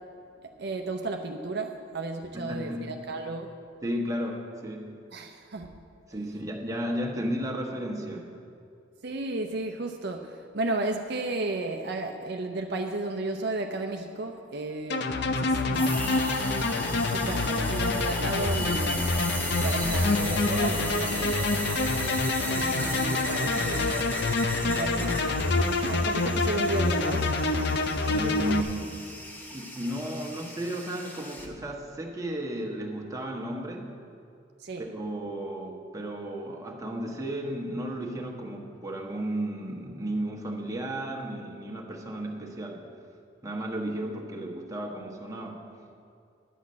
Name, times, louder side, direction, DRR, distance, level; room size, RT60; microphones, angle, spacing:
voice 1, 0.4-3.5 5.1-5.7 6.3-6.4 9.0-16.1 17.0-19.1 19.4-22.0 22.5-24.1 24.6-27.4 34.6-34.9, right 2 dB, 60° right, 4 dB, 0.7 m, -33 dB
voice 2, 2.3-2.9 3.8-5.0 6.1-8.3 28.1-29.0 29.5-33.9 34.8-42.8 43.4-45.7, right 1 dB, 20° right, -1 dB, 1.2 m, -34 dB
sound 1, 14.9-28.6, left 3 dB, 60° left, 0.7 m, -27 dB
sound 2, 15.7-31.5, equal, 10° left, 1.1 m, -36 dB
11.0 x 6.1 x 8.5 m, 2.5 s
head